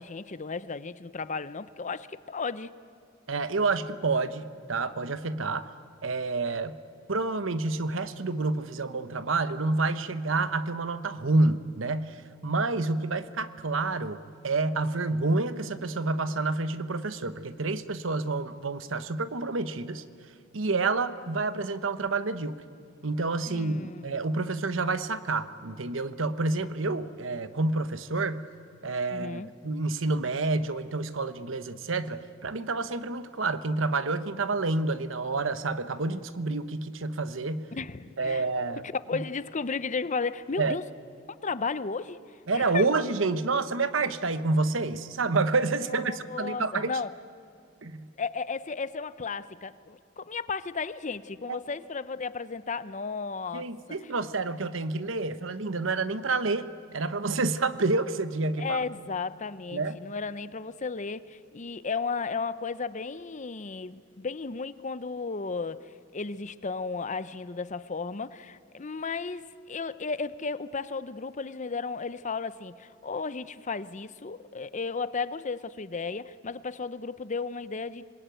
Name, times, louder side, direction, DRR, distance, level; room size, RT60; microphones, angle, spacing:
voice 1, 0.0-2.7 23.5-24.0 29.1-29.5 37.7-38.5 39.1-40.8 41.3-42.2 42.5-42.8 45.9-47.1 48.2-53.7 58.6-78.0, left 4 dB, 40° left, 15 dB, 0.7 m, -34 dB
voice 2, 3.3-5.7 6.0-6.8 7.1-20.0 20.5-22.6 23.0-28.5 28.8-37.7 38.2-38.8 39.1-39.2 40.6-40.8 42.5-46.9 47.8-48.1 51.5-51.6 53.5-58.8 59.7-60.0, right 3 dB, 85° right, 12 dB, 1.0 m, -29 dB
26.5 x 20.5 x 9.2 m, 2.4 s
head